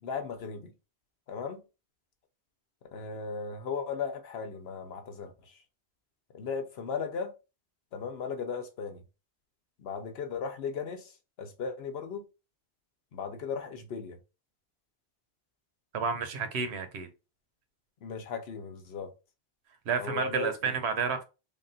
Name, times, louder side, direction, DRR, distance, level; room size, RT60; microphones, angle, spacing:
voice 1, 0.0-0.7 1.3-1.6 2.9-5.6 6.3-7.3 7.9-9.0 9.8-11.1 11.4-12.2 13.1-14.2 18.0-19.1 20.0-20.7, left 5 dB, 75° left, 1.0 m, -36 dB
voice 2, 15.9-17.1 19.9-21.2, right 5 dB, 85° right, 1.0 m, -30 dB
3.5 x 2.3 x 3.8 m
omnidirectional pair, 1.1 m